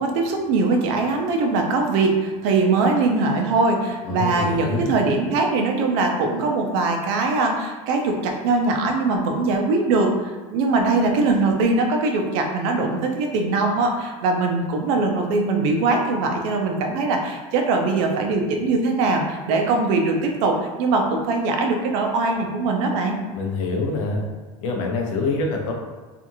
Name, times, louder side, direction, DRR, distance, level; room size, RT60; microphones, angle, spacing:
voice 1, 0.0-23.2, right 3 dB, 60° right, 3 dB, 0.5 m, -21 dB
voice 2, 4.0-5.0 23.3-24.2 24.6-25.7, left 3 dB, 85° left, 1 dB, 0.6 m, -25 dB
2.8 x 2.5 x 2.6 m, 1.3 s
supercardioid pair, 145°, 16 cm